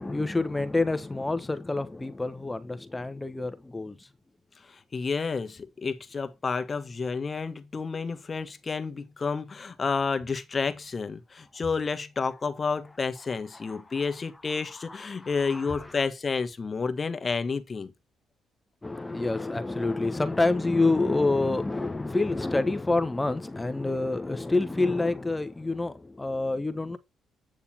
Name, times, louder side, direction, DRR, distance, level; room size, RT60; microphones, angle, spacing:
voice 1, 0.0-4.0 15.5-15.6 18.8-27.0, left 2 dB, 15° left, 1.2 m, -27 dB
voice 2, 4.6-17.9, left 4 dB, 35° left, 1.4 m, -30 dB
9.0 x 6.8 x 4.3 m
cardioid pair, 90°, 0 cm